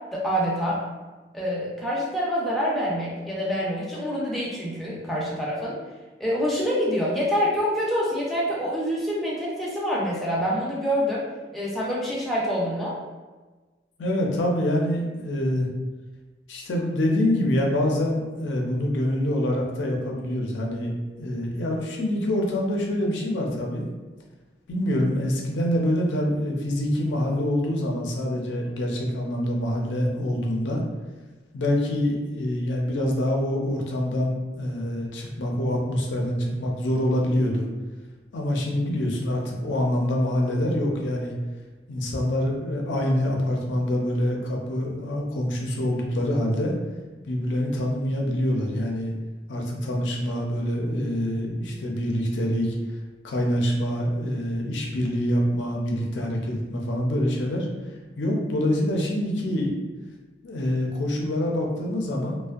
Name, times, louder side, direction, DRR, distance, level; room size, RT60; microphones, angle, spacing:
voice 1, 0.1-0.8 1.3-5.8 6.2-11.2 11.5-13.0, equal, ahead, -6 dB, 0.4 m, -26 dB
voice 2, 14.0-15.7 16.5-20.9 21.2-23.9 24.7-30.8 31.5-37.7 38.3-41.3 41.9-46.7 47.2-49.1 49.5-52.7 53.2-57.7 58.2-59.7 60.4-62.4, left 1 dB, 85° left, -1 dB, 0.5 m, -25 dB
2.5 x 2.1 x 2.3 m, 1.3 s
head